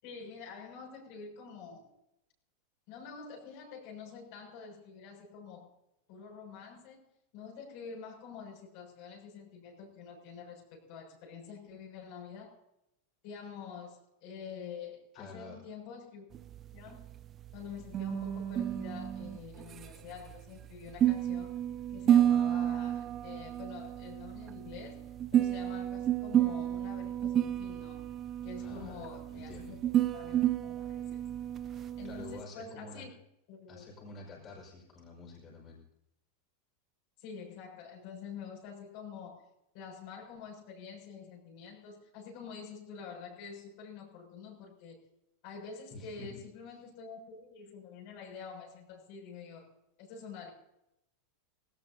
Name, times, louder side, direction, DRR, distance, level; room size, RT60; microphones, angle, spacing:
voice 1, 0.0-1.9 2.9-5.7 6.1-7.0 7.3-12.5 13.2-16.3 16.7-17.1 17.5-21.5 21.9-25.0 25.3-28.0 28.4-29.8 30.1-31.2 32.0-33.1 33.5-34.1 37.2-39.5 39.7-45.0 45.4-49.7 50.0-50.5, left 6 dB, 60° left, -1 dB, 6.6 m, -47 dB
voice 2, 15.1-15.6 28.6-29.8 31.5-31.7 32.0-33.1 33.7-35.8 45.9-46.4, left 3 dB, 35° left, -2 dB, 5.5 m, -49 dB
sound 1, 16.3-32.4, right 11 dB, 35° right, 0.5 m, -31 dB
19.5 x 18.0 x 2.8 m, 0.83 s
hypercardioid pair, 95°, 0 cm